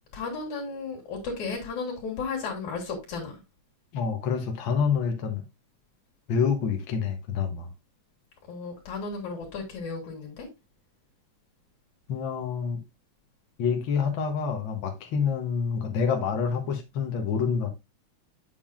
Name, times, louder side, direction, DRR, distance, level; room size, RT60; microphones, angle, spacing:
voice 1, 0.1-3.4 8.5-10.5, left 4 dB, 80° left, 3.1 m, -34 dB
voice 2, 3.9-5.4 6.3-7.7 12.1-12.8 13.6-17.7, left 6 dB, 60° left, 1.3 m, -27 dB
7.3 x 6.8 x 2.4 m
omnidirectional pair, 3.4 m